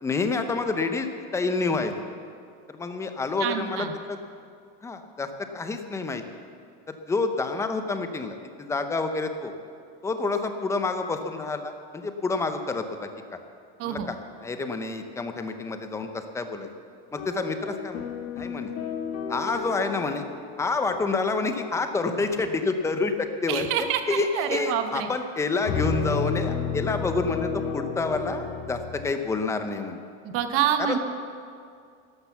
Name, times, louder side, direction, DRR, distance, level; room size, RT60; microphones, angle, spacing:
voice 1, 0.0-1.9 2.7-3.9 4.8-5.3 5.5-6.2 6.9-9.5 10.0-13.1 13.8-14.2 14.4-16.7 17.1-18.0 18.4-18.7 19.3-20.3 20.6-30.0 30.8-31.0, left 3 dB, 10° left, 7 dB, 0.7 m, -28 dB
voice 2, 3.4-4.0 13.8-14.1 23.5-25.1 30.2-31.0, right 9 dB, 45° right, 7 dB, 1.0 m, -27 dB
sound 1, 17.2-21.6 22.3-22.7 25.6-29.1, left 6 dB, 50° left, 1.5 m, -32 dB
12.0 x 12.0 x 7.1 m, 2.3 s
cardioid pair, 170°, 31 cm